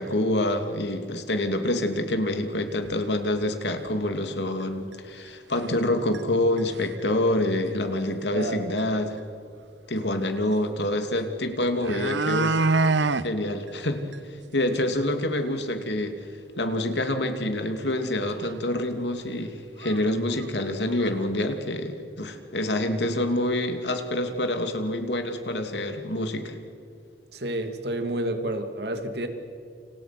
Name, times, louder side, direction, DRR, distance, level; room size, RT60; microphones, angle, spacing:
voice 1, 0.0-9.2 9.9-12.6 13.2-16.2 16.6-26.5, left 1 dB, 75° left, 6 dB, 2.8 m, -27 dB
sound 1, 2.8-2.9 3.4-3.5 3.9-4.0 4.9-5.0 5.6-5.9 6.1-6.2 6.6-7.0 8.4-8.5 8.8-8.9 11.2-11.3 11.6-13.3 13.7-13.8 14.1-14.2 14.6-14.7 15.0-15.1 17.9-18.0 18.4-18.5 19.3-19.4 19.8-20.0 20.3-21.1 21.4-21.5, right 3 dB, 90° right, 0.9 m, -26 dB
voice 2, 8.3-8.7 27.3-29.3, right 1 dB, 65° right, 6 dB, 2.6 m, -30 dB
29.5 x 28.5 x 6.1 m, 2.4 s
head